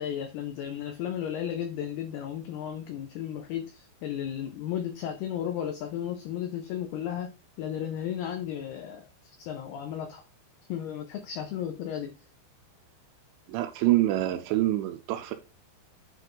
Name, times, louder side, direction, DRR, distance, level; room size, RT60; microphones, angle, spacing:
voice 1, 0.0-7.3 7.6-9.1 9.4-10.2 10.7-12.1, left 10 dB, 90° left, 2.2 m, -34 dB
voice 2, 13.5-15.3, right 15 dB, 80° right, 2.8 m, -26 dB
9.2 x 3.2 x 3.8 m
omnidirectional pair, 5.5 m